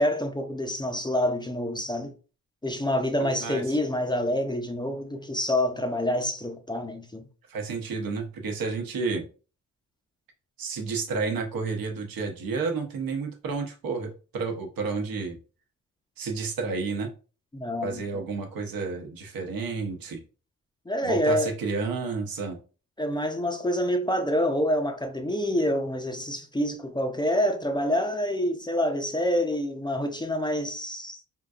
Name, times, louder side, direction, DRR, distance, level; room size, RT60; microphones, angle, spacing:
voice 1, 0.0-2.1 2.6-7.3 17.5-18.2 20.9-21.5 23.0-31.2, left 1 dB, 15° left, 0.4 m, -27 dB
voice 2, 3.2-3.8 7.5-9.2 10.6-15.4 16.2-17.1 17.8-20.2 21.0-22.6, right 4 dB, 75° right, 0.9 m, -31 dB
3.7 x 2.6 x 2.3 m
cardioid pair, 90°, 35 cm